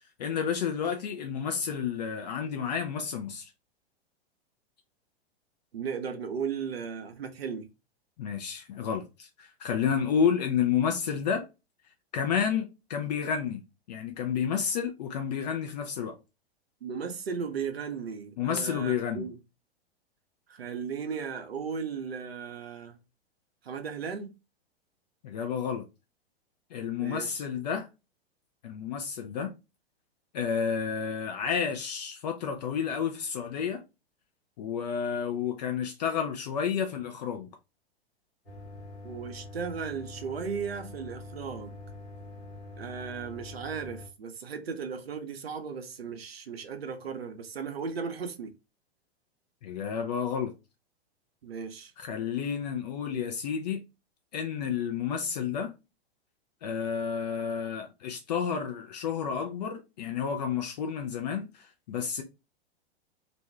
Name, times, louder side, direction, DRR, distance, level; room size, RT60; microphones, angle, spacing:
voice 1, 0.2-3.5 8.2-11.5 12.1-13.6 13.9-16.1 18.4-19.3 25.2-25.8 26.7-27.9 28.6-29.5 30.3-33.8 34.6-37.5 49.6-50.5 52.0-53.8 54.3-55.7 56.6-62.2, left 7 dB, 45° left, 0.4 m, -30 dB
voice 2, 5.7-7.7 16.8-19.3 20.5-23.0 23.6-24.3 26.9-27.3 39.0-41.8 42.8-48.5 51.4-51.9, right 6 dB, 70° right, 0.6 m, -36 dB
sound 1, 38.5-44.1, left 2 dB, 80° left, 1.1 m, -44 dB
2.5 x 2.2 x 3.2 m
figure-of-eight pair, 100°, 31 cm